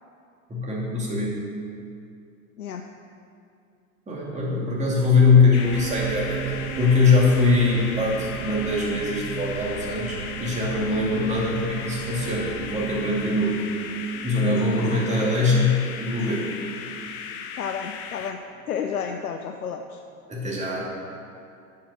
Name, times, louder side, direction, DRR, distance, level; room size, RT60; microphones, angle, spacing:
voice 1, 0.5-1.4 4.1-6.5 6.8-13.6 14.2-16.5 20.3-20.9, left 3 dB, 15° right, -5 dB, 2.5 m, -22 dB
sound 1, 5.5-18.3, left 7 dB, 45° left, 0.8 m, -37 dB
sound 2, 5.6-18.0 18.5-18.6, right 8 dB, 50° right, 0.7 m, -37 dB
voice 2, 17.6-18.4 18.7-20.0, left 7 dB, 85° left, 4 dB, 0.6 m, -31 dB
10.0 x 5.7 x 6.3 m, 2.5 s
figure-of-eight pair, 85°, 43 cm